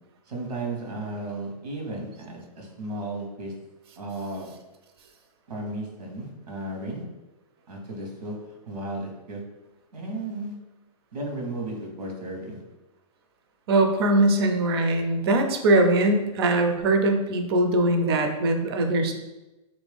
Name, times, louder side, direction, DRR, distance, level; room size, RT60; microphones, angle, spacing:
voice 1, 0.3-3.5 4.0-4.5 5.5-7.0 7.7-8.4 8.7-9.4 9.9-10.6 11.1-12.6, right 2 dB, 85° right, 1 dB, 1.1 m, -34 dB
voice 2, 13.7-19.1, right 2 dB, 40° right, 5 dB, 0.5 m, -21 dB
3.1 x 2.6 x 3.4 m, 1.0 s
hypercardioid pair, 160°, 20 cm